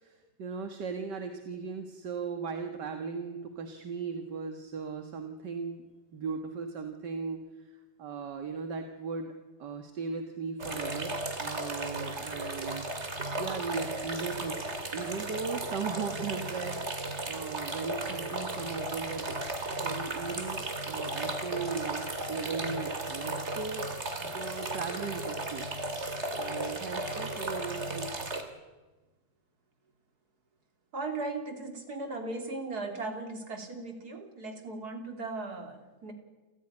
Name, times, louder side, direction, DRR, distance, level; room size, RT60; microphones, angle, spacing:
voice 1, 0.0-9.3 9.6-12.9 13.4-14.6 14.9-19.4 19.8-23.9 24.2-28.3, right 5 dB, 75° right, 6 dB, 2.2 m, -38 dB
sound 1, 10.6-28.4, right 2 dB, 40° right, 2.9 m, -35 dB
voice 2, 30.9-36.1, right 3 dB, 60° right, 5 dB, 3.6 m, -37 dB
28.5 x 15.5 x 9.9 m, 1.2 s
omnidirectional pair, 1.8 m